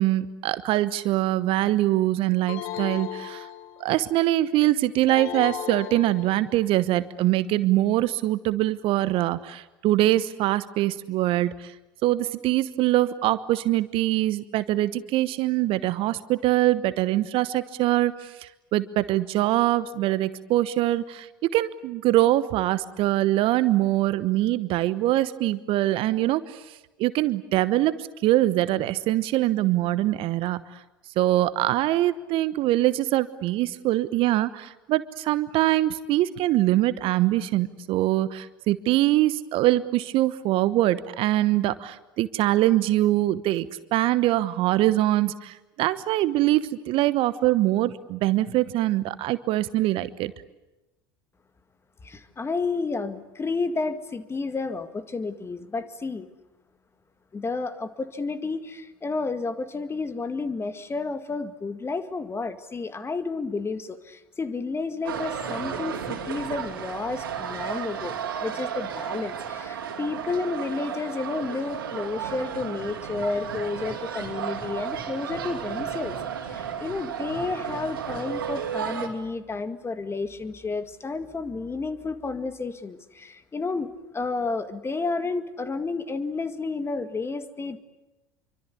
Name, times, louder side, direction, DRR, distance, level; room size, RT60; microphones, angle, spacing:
voice 1, 0.0-3.5 3.8-11.7 12.0-26.6 27.0-30.6 31.2-50.3, right 15 dB, 50° right, 15 dB, 1.1 m, -23 dB
sound 1, 2.5-4.0 5.1-6.7, left 12 dB, 55° left, 1.5 m, -36 dB
voice 2, 52.0-56.3 57.3-76.2 76.5-87.8, left 3 dB, 20° left, 11 dB, 2.0 m, -31 dB
sound 2, 65.0-79.1, right 8 dB, 75° right, 3.0 m, -33 dB
26.5 x 24.5 x 8.4 m, 1.0 s
figure-of-eight pair, 70°, 12 cm